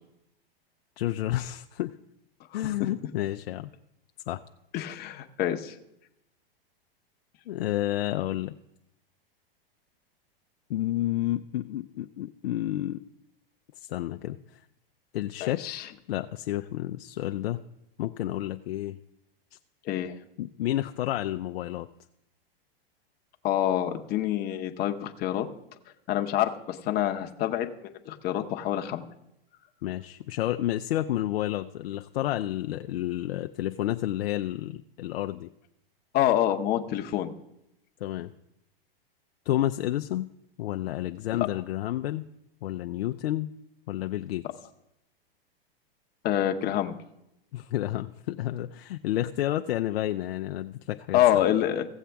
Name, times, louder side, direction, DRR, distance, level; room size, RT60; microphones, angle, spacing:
voice 1, 1.0-2.0 2.5-3.7 4.3-4.4 7.5-8.6 10.7-13.0 13.8-14.6 15.1-15.6 16.1-17.7 18.0-19.0 20.4-21.9 29.8-35.5 38.0-38.3 39.5-42.3 42.6-43.5 43.9-44.5 47.5-51.5, left 13 dB, 80° left, 6 dB, 0.5 m, -30 dB
voice 2, 4.7-5.7 15.4-15.9 19.8-20.1 23.4-25.5 26.1-29.0 36.1-37.3 46.2-46.9 51.1-51.9, left 12 dB, 30° left, 5 dB, 0.8 m, -26 dB
16.0 x 7.4 x 3.4 m, 0.85 s
hypercardioid pair, 125°, 30 cm